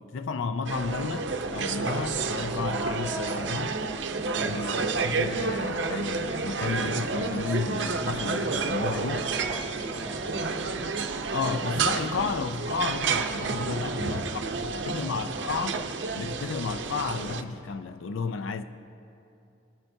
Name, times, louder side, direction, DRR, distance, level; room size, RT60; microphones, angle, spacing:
voice 1, 0.0-3.8 4.4-9.3 11.3-14.2 14.6-15.9 16.1-18.6, left 4 dB, 90° left, 0.4 m, -32 dB
sound 1, 0.7-17.4, right 4 dB, 65° right, 0.6 m, -30 dB
voice 2, 4.3-4.6 9.0-10.7 13.7-15.2, equal, 20° left, 2.3 m, -43 dB
20.5 x 10.0 x 2.7 m
head